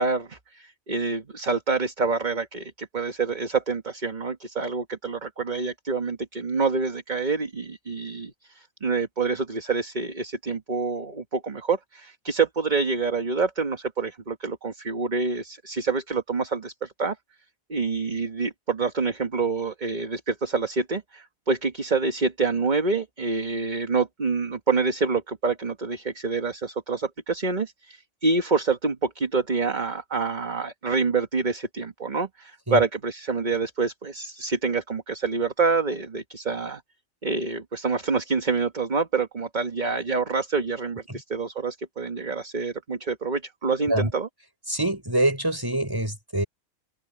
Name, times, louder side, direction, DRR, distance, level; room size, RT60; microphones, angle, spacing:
voice 1, 0.0-17.2 17.7-36.8 37.2-44.3, right 4 dB, 35° right, 1.7 m, -27 dB
voice 2, 44.7-46.4, right 1 dB, 15° right, 6.5 m, -25 dB
omnidirectional pair, 1.4 m